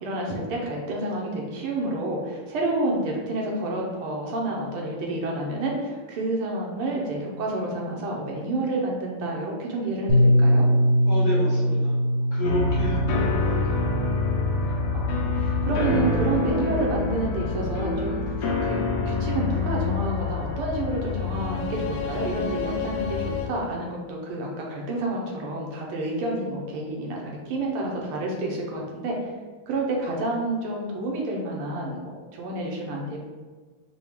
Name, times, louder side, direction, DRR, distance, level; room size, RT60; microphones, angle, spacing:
voice 1, 0.0-10.7 14.6-18.8 19.1-29.3 29.7-33.2, right 2 dB, 85° right, -1 dB, 1.7 m, -29 dB
Bass guitar, 10.1-16.3, equal, 50° right, 1.0 m, -23 dB
voice 2, 11.1-12.0 12.3-13.8, left 1 dB, 55° left, -6 dB, 1.1 m, -30 dB
sound 1, 12.4-23.5, left 4 dB, 85° left, 0.9 m, -26 dB
4.6 x 2.3 x 3.5 m, 1.4 s
omnidirectional pair, 2.3 m